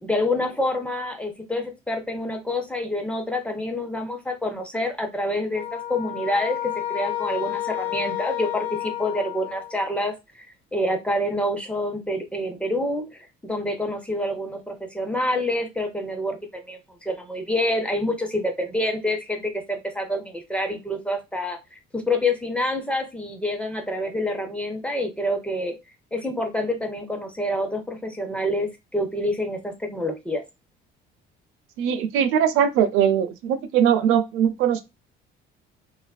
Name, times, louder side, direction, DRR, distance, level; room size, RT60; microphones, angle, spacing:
voice 1, 0.0-10.4 10.7-25.8 26.1-30.4, left 1 dB, 5° left, 0.4 m, -27 dB
sound 1, 5.5-10.0, left 13 dB, 65° left, 0.6 m, -30 dB
voice 2, 31.8-34.8, right 8 dB, 80° right, 0.6 m, -21 dB
3.2 x 2.5 x 2.2 m
cardioid pair, 160°, 21 cm